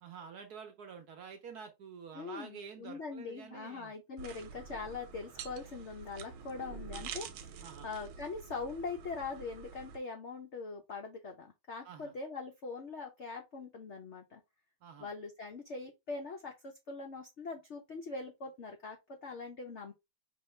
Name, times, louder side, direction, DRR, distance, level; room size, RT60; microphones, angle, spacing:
voice 1, 0.0-3.9 7.6-7.9 11.8-12.1 14.8-15.1, right 6 dB, 65° right, 1.0 m, -48 dB
voice 2, 2.1-14.4 15.0-19.9, left 4 dB, 80° left, 0.6 m, -42 dB
sound 1, 4.2-10.0, right 7 dB, 80° right, 1.5 m, -47 dB
5.3 x 3.1 x 3.2 m
omnidirectional pair, 2.2 m